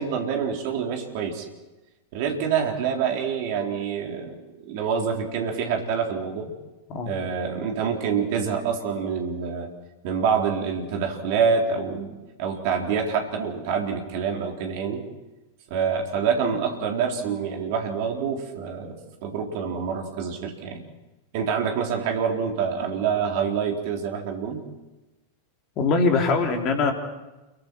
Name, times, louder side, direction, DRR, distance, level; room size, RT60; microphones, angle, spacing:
voice 1, 0.0-1.5 2.1-6.5 7.0-9.7 10.0-12.1 12.4-15.0 15.7-20.8 21.3-24.6, right 6 dB, 50° right, 2 dB, 3.7 m, -26 dB
voice 2, 25.8-26.9, left 4 dB, 35° left, 3 dB, 3.6 m, -22 dB
29.5 x 22.5 x 4.6 m, 1.1 s
figure-of-eight pair, 90°, 0 cm